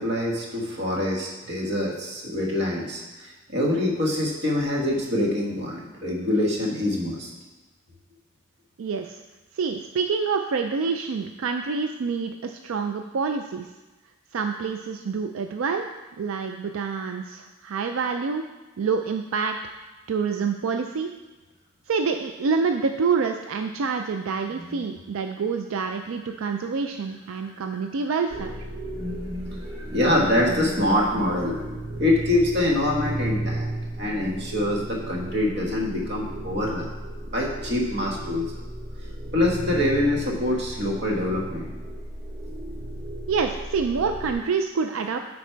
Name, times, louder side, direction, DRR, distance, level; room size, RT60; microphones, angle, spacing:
voice 1, 0.0-7.3 24.6-24.8 27.5-27.6 28.9-31.7 32.0-33.7 34.0-36.9 37.3-38.5 39.3-41.7, left 1 dB, 55° right, -1 dB, 1.4 m, -25 dB
voice 2, 8.8-9.2 9.5-13.7 14.3-15.8 16.2-18.4 18.8-19.6 20.1-21.1 21.9-28.7 43.3-45.2, right 5 dB, 85° right, 6 dB, 0.4 m, -27 dB
sound 1, 28.3-44.3, right 1 dB, 25° right, 1.1 m, -35 dB
9.3 x 4.1 x 4.5 m, 1.1 s
head